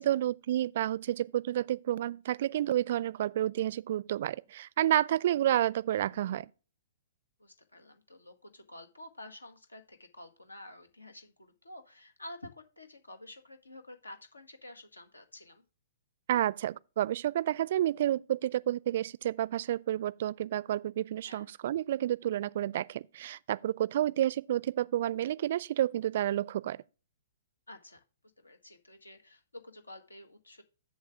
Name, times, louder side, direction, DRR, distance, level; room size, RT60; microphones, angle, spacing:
voice 1, 0.0-6.5 16.3-26.8, right 12 dB, 50° right, 0.4 m, -30 dB
voice 2, 7.4-15.6 21.2-21.5 27.7-28.0 28.4-30.6, left 1 dB, 80° left, 1.6 m, -50 dB
7.5 x 7.2 x 3.5 m
figure-of-eight pair, 115°, 0 cm